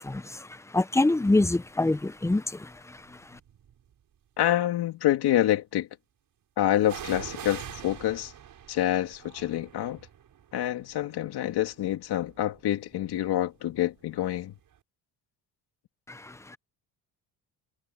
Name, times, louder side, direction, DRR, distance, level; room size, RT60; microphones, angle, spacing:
voice 1, 0.0-3.4 16.1-16.6, left 2 dB, 5° left, 0.7 m, -26 dB
sound 1, 2.0-2.2 3.0-3.9 6.8-14.5 14.7-14.8, right 9 dB, 50° right, 6.0 m, -45 dB
voice 2, 4.4-5.9 6.6-8.3 8.7-10.0 10.5-14.5, left 13 dB, 70° left, 2.3 m, -27 dB
cardioid pair, 130°, 40 cm